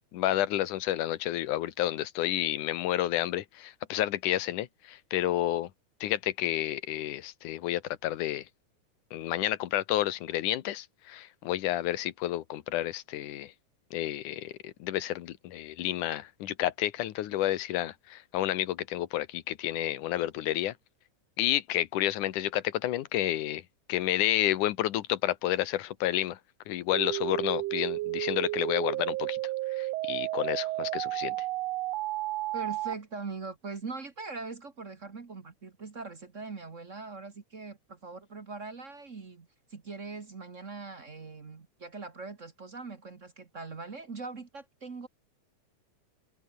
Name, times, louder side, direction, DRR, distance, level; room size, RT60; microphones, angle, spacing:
voice 1, 0.1-5.7 6.0-8.4 9.1-13.5 13.9-20.7 21.4-23.6 23.9-26.4 26.7-29.4 29.8-31.4, left 13 dB, 80° left, 2.6 m, -30 dB
sound 1, 26.9-32.9, right 18 dB, 85° right, 1.5 m, -32 dB
voice 2, 32.5-45.1, right 4 dB, 35° right, 1.3 m, -41 dB
omnidirectional pair, 3.6 m